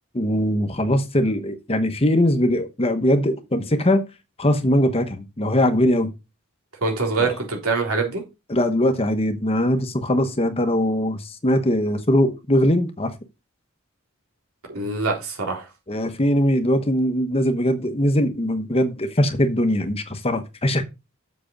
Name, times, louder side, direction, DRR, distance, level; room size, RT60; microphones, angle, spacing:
voice 1, 0.1-4.0 4.4-6.1 7.2-7.4 8.5-13.1 15.9-20.8, left 1 dB, 25° left, 1.0 m, -21 dB
voice 2, 6.8-8.2 14.7-15.7, right 3 dB, 80° right, 3.7 m, -24 dB
7.6 x 6.0 x 5.2 m
head